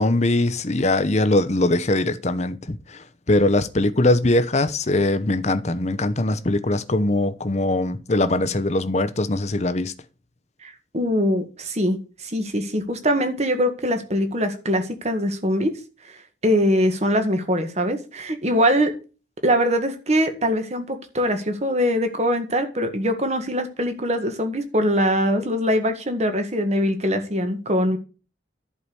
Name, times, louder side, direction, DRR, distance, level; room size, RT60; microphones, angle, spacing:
voice 1, 0.0-9.9, left 2 dB, 35° left, 0.8 m, -21 dB
voice 2, 10.6-12.0 12.2-15.7 16.4-18.9 19.4-28.0, equal, 35° right, 1.8 m, -22 dB
11.0 x 5.0 x 7.0 m
head